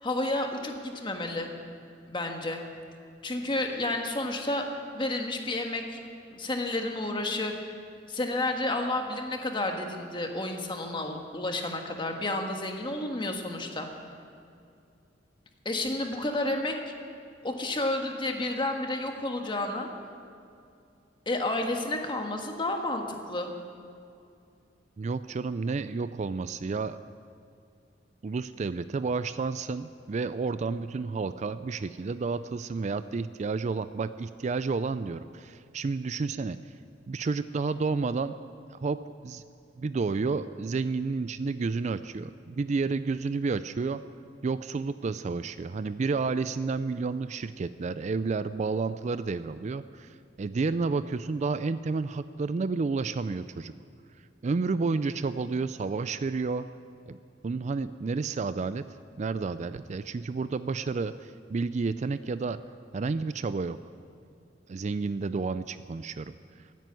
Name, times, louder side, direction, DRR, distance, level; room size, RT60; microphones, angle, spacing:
voice 1, 0.0-1.5 2.1-2.6 3.2-4.7 4.9-6.0 6.4-7.5 8.1-13.9 15.6-16.7 17.4-19.9 21.2-23.5, left 2 dB, 25° left, 3 dB, 1.5 m, -31 dB
voice 2, 25.0-27.0 28.2-36.6 37.1-38.4 38.8-39.0 39.2-39.4 39.8-44.0 44.4-53.7 54.4-56.6 57.1-57.2 57.4-58.8 59.2-62.6 62.9-63.8 64.7-66.3, right 4 dB, 40° right, 13 dB, 0.4 m, -30 dB
15.5 x 9.3 x 9.2 m, 2.5 s
head